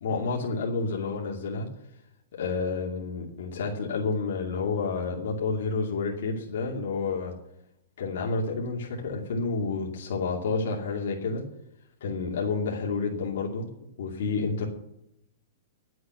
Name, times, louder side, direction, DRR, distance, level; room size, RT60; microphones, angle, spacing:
voice 1, 0.0-1.7 2.3-7.3 8.0-11.4 12.0-13.7 14.0-14.7, left 4 dB, 65° left, -1 dB, 2.5 m, -29 dB
11.0 x 7.8 x 9.5 m, 0.80 s
hypercardioid pair, 165°, 0 cm